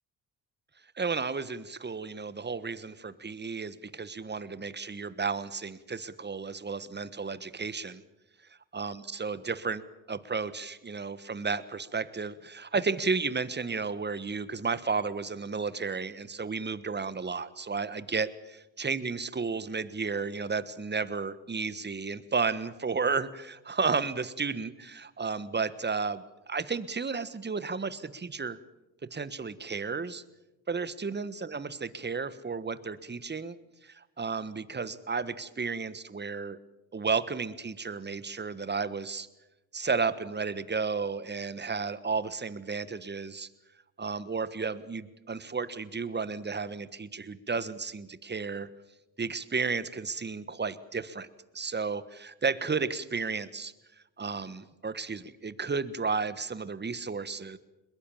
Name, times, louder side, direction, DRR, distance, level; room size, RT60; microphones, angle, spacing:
voice 1, 1.0-8.0 8.7-18.3 18.8-28.6 29.1-30.2 30.7-33.6 33.8-36.6 36.9-39.3 39.7-43.5 44.0-48.7 49.2-51.3 51.5-53.7 54.2-57.6, right 4 dB, 25° right, 16 dB, 1.4 m, -33 dB
22.0 x 21.0 x 7.2 m, 0.98 s
hypercardioid pair, 55°, 41 cm